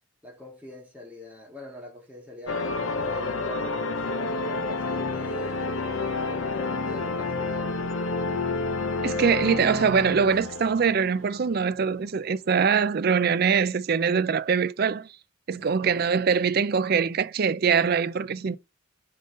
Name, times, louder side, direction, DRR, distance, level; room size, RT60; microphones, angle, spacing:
voice 1, 0.2-2.8 3.1-5.6 6.2-7.8 15.8-16.1, left 1 dB, 10° right, 1.9 m, -45 dB
sound 1, 2.5-11.7, left 3 dB, 80° left, 0.8 m, -29 dB
voice 2, 9.0-15.1 15.5-18.6, right 6 dB, 50° right, 0.4 m, -23 dB
5.3 x 3.8 x 5.1 m
head